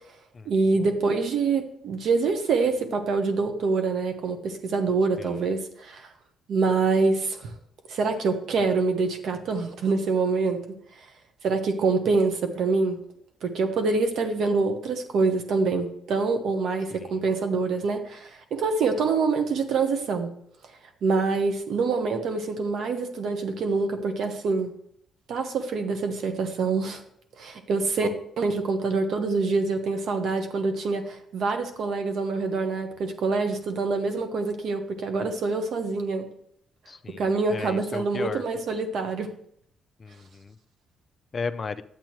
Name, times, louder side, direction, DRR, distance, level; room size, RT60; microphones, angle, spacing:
voice 1, 0.4-6.1 6.5-7.5 7.9-10.6 11.4-13.0 13.4-20.3 21.0-24.7 25.3-27.0 27.4-28.1 28.4-36.3 37.2-39.3, right 4 dB, 70° right, 6 dB, 1.2 m, -25 dB
voice 2, 36.9-37.2 37.5-38.4 40.0-40.6 41.3-41.8, left 4 dB, 35° left, 12 dB, 0.5 m, -35 dB
10.5 x 8.0 x 3.1 m, 0.69 s
cardioid pair, 90°, 0 cm